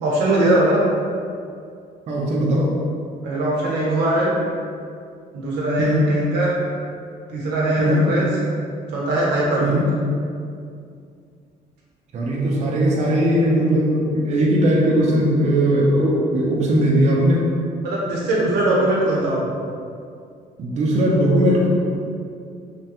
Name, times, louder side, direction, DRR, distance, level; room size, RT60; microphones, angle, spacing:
voice 1, 0.0-0.8 3.2-4.3 5.3-6.6 7.3-8.3 8.9-9.8 17.8-19.5, right 1 dB, 85° right, -5 dB, 0.8 m, -20 dB
voice 2, 2.1-2.7 5.8-6.0 7.8-8.1 9.6-9.8 12.1-17.5 20.6-21.7, equal, 40° right, -4 dB, 0.5 m, -19 dB
3.2 x 2.2 x 2.8 m, 2.4 s
cardioid pair, 110°, 17 cm